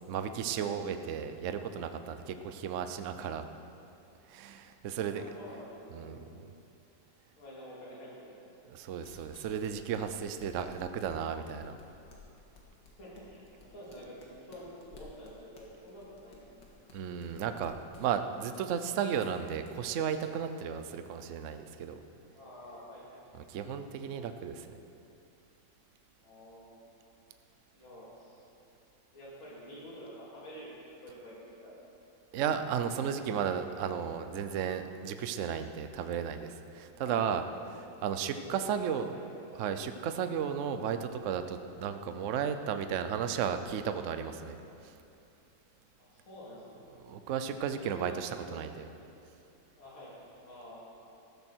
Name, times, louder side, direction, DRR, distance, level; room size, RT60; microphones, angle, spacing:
voice 1, 0.1-3.5 4.3-5.3 5.9-6.5 8.7-11.7 16.9-22.0 23.5-24.7 32.3-37.4 38.0-39.1 39.6-44.6 47.0-48.9, right 8 dB, 75° right, 8 dB, 0.7 m, -34 dB
voice 2, 5.1-6.2 7.4-8.5 13.0-16.4 22.3-23.4 26.2-26.8 27.7-28.4 29.1-31.7 37.0-37.3 37.6-37.7 38.1-39.3 43.2-43.4 46.0-46.8 47.7-48.6 49.8-50.2 50.4-50.9, equal, 85° left, -7 dB, 4.1 m, -49 dB
sound 1, 8.6-22.4, left 3 dB, 65° left, 2.4 m, -59 dB
14.0 x 14.0 x 4.5 m, 2.7 s
omnidirectional pair, 2.2 m